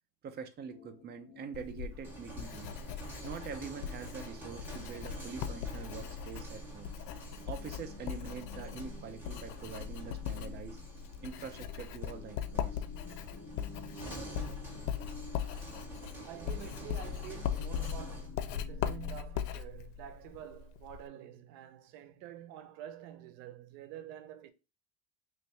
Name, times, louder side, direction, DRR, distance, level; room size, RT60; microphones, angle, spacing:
voice 1, 0.2-2.8 3.2-6.9 7.5-10.8 11.2-12.8, right 6 dB, 20° right, 0.5 m, -44 dB
sound 1, 0.7-19.3, left 3 dB, 20° left, 0.7 m, -53 dB
Writing, 1.5-21.1, left 9 dB, 90° left, 0.7 m, -40 dB
sound 2, 1.9-18.3, right 2 dB, 5° right, 1.8 m, -49 dB
voice 2, 16.2-24.5, right 11 dB, 85° right, 0.8 m, -48 dB
3.2 x 2.6 x 4.5 m
supercardioid pair, 120°, 49 cm